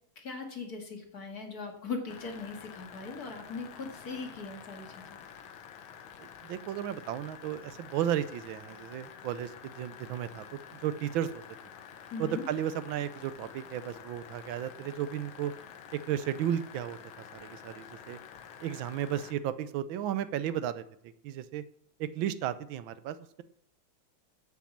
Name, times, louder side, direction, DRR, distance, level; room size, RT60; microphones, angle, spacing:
voice 1, 0.2-4.9 12.1-12.4, left 4 dB, 50° left, 2 dB, 2.4 m, -39 dB
sound 1, 2.1-19.3, left 7 dB, 90° left, 1.8 m, -49 dB
voice 2, 6.2-10.4 10.7-11.4 12.2-15.5 15.9-18.2 18.6-20.8 21.2-21.6 22.0-23.4, right 10 dB, 80° right, 13 dB, 1.4 m, -34 dB
8.3 x 8.3 x 7.1 m, 0.68 s
omnidirectional pair, 2.2 m